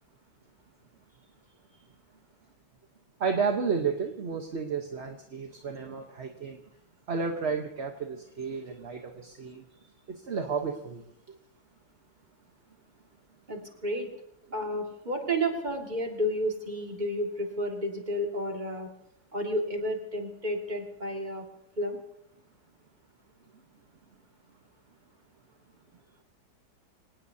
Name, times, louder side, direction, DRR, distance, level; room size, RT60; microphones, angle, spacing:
voice 1, 3.2-6.6 7.1-9.6 10.1-11.4 15.2-15.3, right 5 dB, 40° right, 3 dB, 1.1 m, -32 dB
voice 2, 13.5-14.1 14.5-18.9 19.3-21.5 21.8-22.0, equal, 25° right, 2 dB, 2.1 m, -31 dB
25.5 x 18.5 x 2.8 m, 0.74 s
omnidirectional pair, 2.1 m